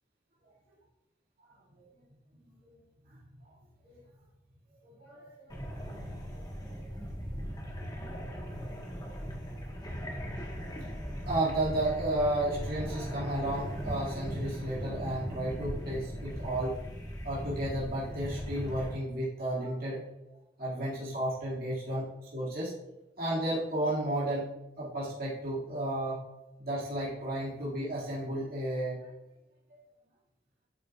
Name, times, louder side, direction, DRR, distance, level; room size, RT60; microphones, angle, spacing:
voice 1, 4.8-5.5 6.3-6.9 8.7-8.8 11.2-16.7 17.2-20.0 20.6-22.1 22.3-22.7 23.2-24.5 24.8-26.2 26.6-29.0 29.7-29.8, right 1 dB, 55° right, -8 dB, 2.2 m, -33 dB
sound 1, 5.5-18.9, equal, 25° left, 1.4 m, -38 dB
8.8 x 6.6 x 2.4 m, 0.91 s
head